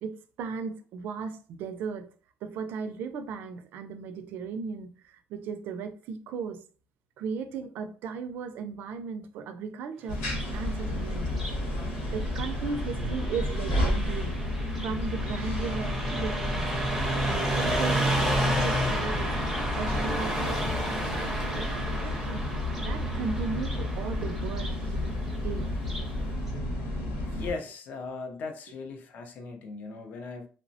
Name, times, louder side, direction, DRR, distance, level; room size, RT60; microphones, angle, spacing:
voice 1, 0.0-2.1 2.4-6.6 7.2-10.2 10.5-11.3 12.0-14.3 14.8-16.7 17.2-19.4 19.7-22.4 22.8-25.7, right 5 dB, 60° right, 0.4 m, -36 dB
sound 1, 10.1-27.5, left 1 dB, 85° left, 1.2 m, -31 dB
Car passing by, 10.2-26.2, right 1 dB, 5° right, 0.5 m, -32 dB
voice 2, 27.3-30.5, left 4 dB, 45° left, 0.4 m, -38 dB
3.0 x 2.0 x 2.6 m
cardioid pair, 175°, 4 cm